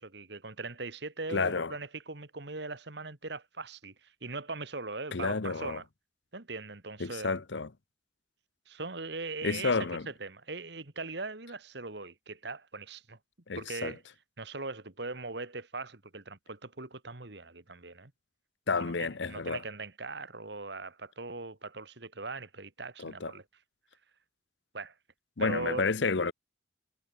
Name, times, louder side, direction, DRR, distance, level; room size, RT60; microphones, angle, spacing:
voice 1, 0.0-5.8 6.3-7.3 8.7-13.2 13.5-14.0 14.4-18.1 18.8-23.4 24.7-24.9 25.4-25.9, right 3 dB, 60° right, 1.9 m, -40 dB
voice 2, 1.3-1.7 5.1-5.8 7.0-7.7 9.4-10.0 13.5-13.9 18.7-19.6 23.0-23.3 25.4-26.3, left 4 dB, 65° left, 0.9 m, -30 dB
head